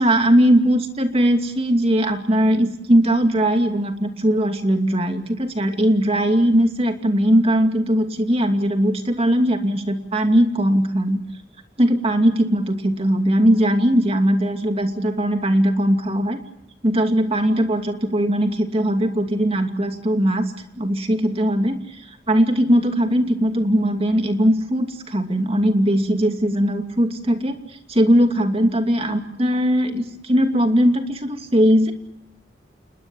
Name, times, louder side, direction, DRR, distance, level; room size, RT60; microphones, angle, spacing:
voice 1, 0.0-11.2 11.8-16.4 16.8-20.5 20.8-21.8 22.3-27.6 27.9-31.9, equal, 35° right, 5 dB, 2.6 m, -19 dB
29.0 x 21.0 x 7.1 m, 0.75 s
head